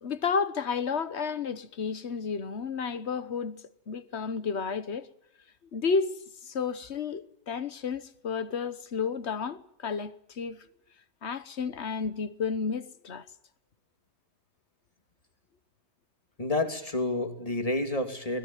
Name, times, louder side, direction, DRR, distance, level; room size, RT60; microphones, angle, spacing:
voice 1, 0.0-3.6 3.9-5.1 5.7-10.6 11.2-13.2, left 5 dB, 45° left, 1.3 m, -32 dB
voice 2, 16.4-18.4, left 2 dB, 20° left, 2.7 m, -29 dB
24.5 x 20.0 x 9.2 m
omnidirectional pair, 1.7 m